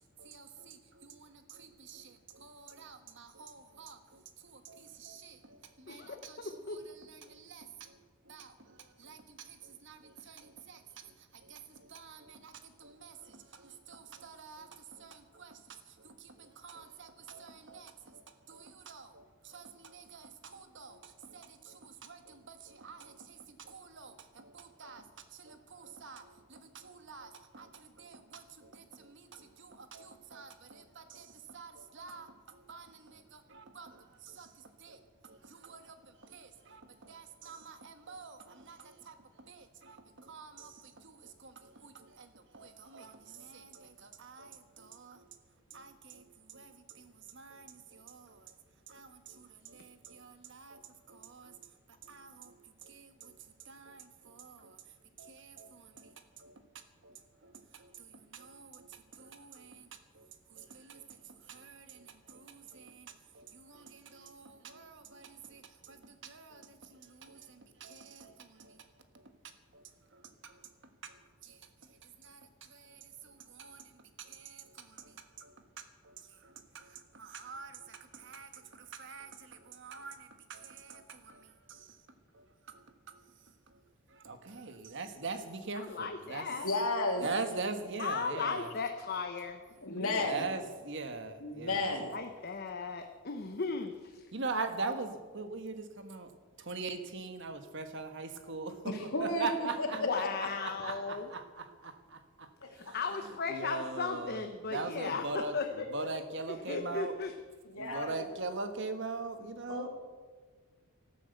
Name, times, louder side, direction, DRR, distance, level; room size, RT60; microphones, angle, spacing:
voice 1, 0.2-8.0 8.2-25.0 25.3-45.3 45.7-48.5 48.9-51.6 52.0-53.3 53.6-54.8 55.2-56.6 57.0-59.9 60.1-68.9 69.1-69.3 69.7-69.8 70.1-70.6 71.0-71.6 71.9-82.0 82.3-83.2 83.7-83.8 84.1-86.5 87.2-88.7 90.3-91.9 94.3-96.3 96.6-98.9 99.2-105.6 105.9-107.1 107.8-109.9, right 3 dB, 55° right, 8 dB, 1.4 m, -44 dB
voice 2, 5.9-6.8 85.7-86.7 88.0-89.6 89.9-90.3 92.1-94.2 100.0-101.3 102.7-105.2 105.5-105.6 106.5-107.3, left 5 dB, 45° left, 5 dB, 0.9 m, -36 dB
voice 3, 86.6-87.3 89.8-90.5 91.4-92.1 98.8-100.3 100.6-100.9 102.6-102.9 105.0-105.1 105.8-106.1 107.6-108.2 109.7-109.9, left 2 dB, 70° left, 2 dB, 2.8 m, -34 dB
13.0 x 12.5 x 8.0 m, 1.4 s
head